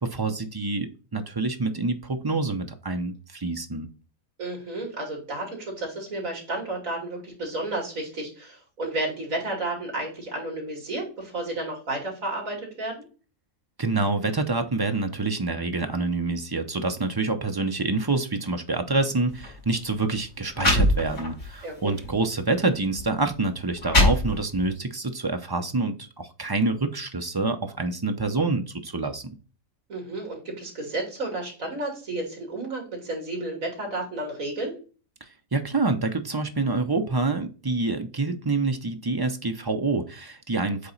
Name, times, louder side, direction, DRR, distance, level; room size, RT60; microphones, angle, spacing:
voice 1, 0.0-3.9 13.8-29.3 35.5-40.9, right 3 dB, 30° right, 6 dB, 0.4 m, -27 dB
voice 2, 4.4-13.0 21.6-21.9 29.9-34.8, right 2 dB, 70° right, 0 dB, 3.2 m, -32 dB
sound 1, 19.3-19.5 20.2-20.3 20.5-21.5 22.0-22.2 23.0-23.1 23.6-24.7, left 1 dB, 75° left, 4.1 m, -22 dB
8.2 x 3.0 x 4.0 m, 0.35 s
omnidirectional pair, 1.5 m